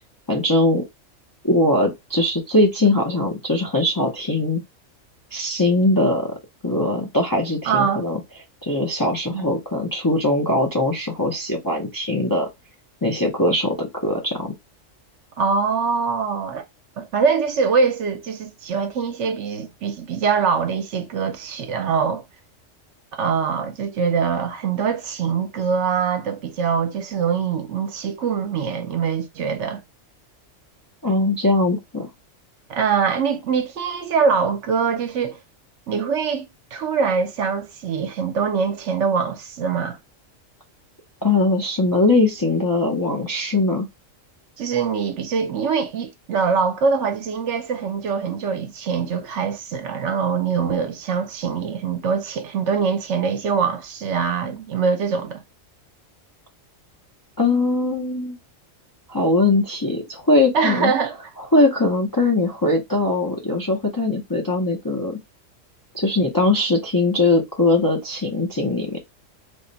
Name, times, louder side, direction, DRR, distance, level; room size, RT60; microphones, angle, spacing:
voice 1, 0.3-0.8 1.4-4.6 5.3-6.3 6.6-8.2 8.6-12.5 13.0-14.5 31.0-32.1 41.2-43.9 57.4-58.4 59.1-60.9 61.4-65.2 65.9-69.0, left 2 dB, 30° left, 0.4 m, -21 dB
voice 2, 7.7-8.0 9.3-9.5 15.4-16.6 17.0-22.2 23.1-29.8 32.7-35.4 35.9-40.0 44.6-55.4 60.5-61.2, right 6 dB, 65° right, 0.9 m, -23 dB
3.4 x 2.1 x 3.9 m
omnidirectional pair, 1.3 m